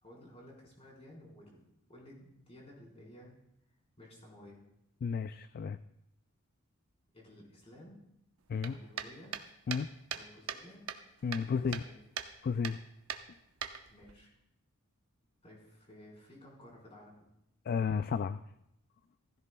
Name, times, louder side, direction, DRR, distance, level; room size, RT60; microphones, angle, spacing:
voice 1, 0.0-1.6 1.9-3.3 4.0-4.6 7.1-8.0 8.6-9.4 10.1-10.9 11.5-12.0 13.9-14.3 15.4-17.3, left 1 dB, 30° left, -3 dB, 4.0 m, -54 dB
voice 2, 5.0-5.8 8.5-8.8 9.7-9.9 11.2-11.8 12.4-12.8 17.7-18.4, left 6 dB, 45° left, 12 dB, 0.3 m, -32 dB
sound 1, 8.6-10.6 10.9-11.9 12.2-12.3 12.6-12.8 13.1-14.1, right 8 dB, 75° right, 0.8 m, -40 dB
16.0 x 15.0 x 2.2 m, 0.80 s
head